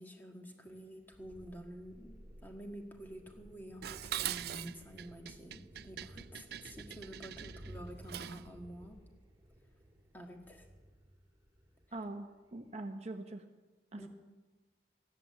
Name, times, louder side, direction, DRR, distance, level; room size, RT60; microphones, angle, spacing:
voice 1, 0.0-9.0 10.1-10.7 14.0-14.1, right 1 dB, 10° left, 3 dB, 1.7 m, -49 dB
sound 1, 0.7-12.0 12.4-12.6, equal, 20° right, 2.2 m, -55 dB
Dishes pots and pans, 3.8-8.5, right 12 dB, 60° right, 0.4 m, -43 dB
voice 2, 11.9-13.4 13.9-14.1, right 2 dB, 40° right, 6 dB, 0.9 m, -43 dB
15.0 x 11.0 x 7.7 m, 1.2 s
head